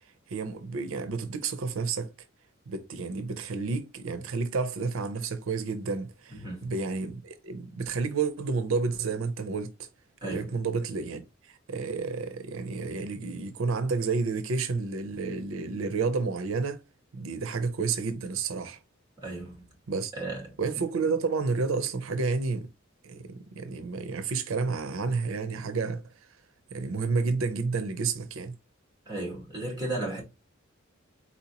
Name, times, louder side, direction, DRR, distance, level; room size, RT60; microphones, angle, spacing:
voice 1, 0.3-2.1 2.7-9.7 10.2-16.8 17.1-18.8 19.9-20.1 20.6-22.7 23.0-26.3 26.7-28.5, right 4 dB, 85° right, 0.6 m, -30 dB
voice 2, 6.4-6.7 10.2-10.5 19.2-19.7 20.2-20.4 29.1-30.2, right 2 dB, 20° right, 2.4 m, -34 dB
4.3 x 4.2 x 2.9 m
head